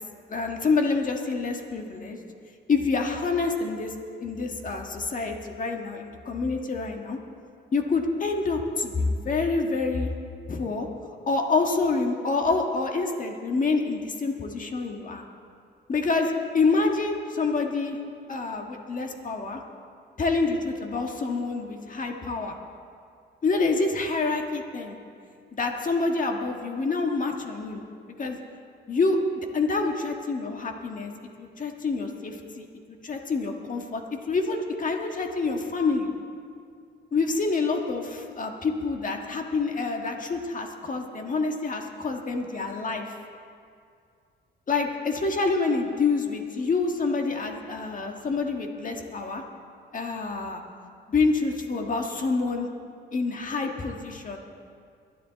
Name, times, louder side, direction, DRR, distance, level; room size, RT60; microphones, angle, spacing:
voice 1, 0.3-2.2 2.7-3.9 4.2-7.2 7.7-10.1 10.5-10.9 11.3-15.2 15.9-18.0 18.3-19.6 20.2-22.5 23.4-25.0 25.5-27.8 28.2-28.4 28.9-31.1 31.4-32.7 33.0-36.1 37.1-43.1 44.7-49.4 49.9-50.6 51.1-52.7 53.1-54.4, left 3 dB, 40° left, 3 dB, 1.6 m, -27 dB
22.5 x 9.8 x 4.0 m, 2.3 s
cardioid pair, 90°, 20 cm